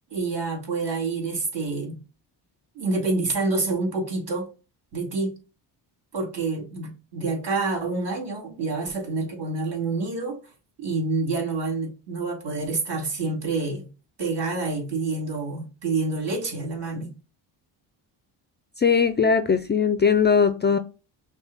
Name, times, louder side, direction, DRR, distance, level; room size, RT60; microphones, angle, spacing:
voice 1, 0.1-1.9 2.7-4.5 4.9-5.4 6.1-10.4 10.8-13.9 14.2-17.1, right 3 dB, 60° right, 2.5 m, -27 dB
voice 2, 18.8-20.8, left 6 dB, 25° left, 0.3 m, -20 dB
6.0 x 2.2 x 3.9 m
cardioid pair, 90°, 45 cm